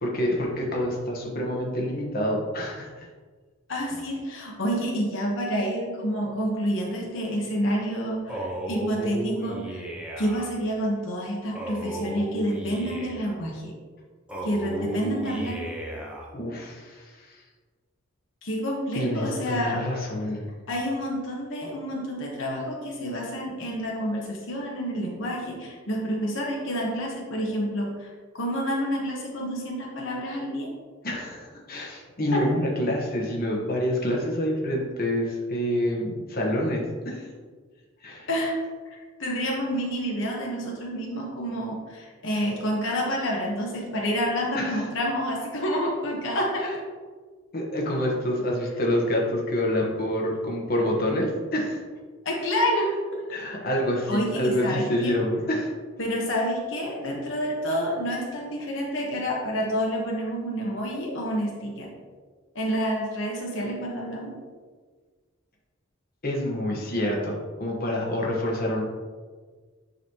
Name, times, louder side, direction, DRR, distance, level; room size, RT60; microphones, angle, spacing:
voice 1, 0.0-2.9 16.3-17.4 18.9-20.4 31.0-37.3 38.0-38.3 44.5-44.9 46.6-46.7 47.5-51.8 53.3-55.7 66.2-68.8, left 1 dB, 50° left, -2 dB, 1.2 m, -27 dB
voice 2, 3.7-9.8 10.2-13.7 14.4-15.6 18.4-19.8 20.7-30.7 32.3-32.4 38.3-38.6 38.9-46.7 52.2-53.3 54.1-55.1 56.0-61.9 62.5-64.3, equal, 70° left, -1 dB, 1.1 m, -28 dB
Male speech man speaking, 8.3-10.5 11.5-13.4 14.3-16.3, right 1 dB, 5° right, 0.9 m, -34 dB
9.3 x 4.1 x 3.0 m, 1.5 s
head